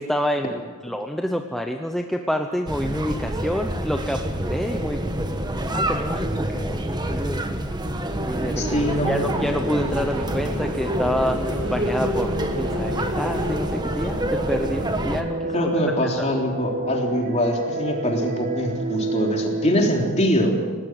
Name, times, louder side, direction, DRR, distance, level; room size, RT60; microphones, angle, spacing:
voice 1, 0.0-5.0 5.7-7.6 8.2-15.7 16.2-16.3, equal, ahead, 3 dB, 0.9 m, -28 dB
sound 1, 2.7-15.2, right 1 dB, 20° right, 1.3 m, -27 dB
sound 2, 8.4-13.5, equal, 85° right, 5.5 m, -32 dB
voice 2, 8.6-9.3 15.5-20.6, equal, 30° left, 0 dB, 3.6 m, -23 dB
sound 3, 12.1-20.1, right 2 dB, 40° right, 1.8 m, -30 dB
19.5 x 18.5 x 7.9 m, 1.5 s
head